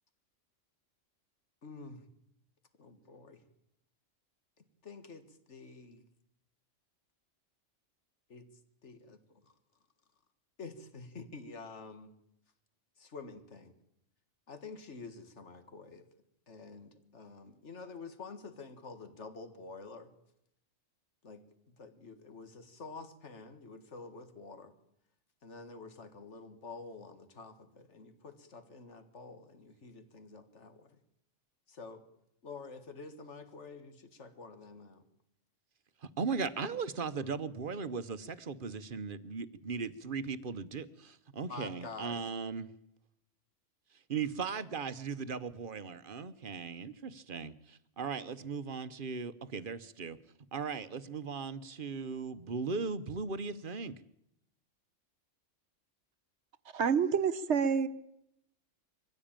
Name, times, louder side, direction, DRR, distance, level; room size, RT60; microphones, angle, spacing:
voice 1, 1.6-2.1 2.8-3.4 4.6-6.0 8.3-8.5 8.8-9.5 10.6-12.1 13.0-13.7 14.5-16.1 16.5-20.1 21.2-24.7 25.4-31.0 31.7-32.0 32.4-35.0 41.5-42.3, left 4 dB, 60° left, 9 dB, 2.1 m, -48 dB
voice 2, 36.0-42.7 44.1-50.2 50.5-53.9, right 5 dB, 45° right, 14 dB, 1.0 m, -38 dB
voice 3, 56.7-57.9, right 6 dB, 60° right, 13 dB, 1.3 m, -28 dB
23.0 x 15.5 x 8.9 m, 0.80 s
omnidirectional pair, 1.3 m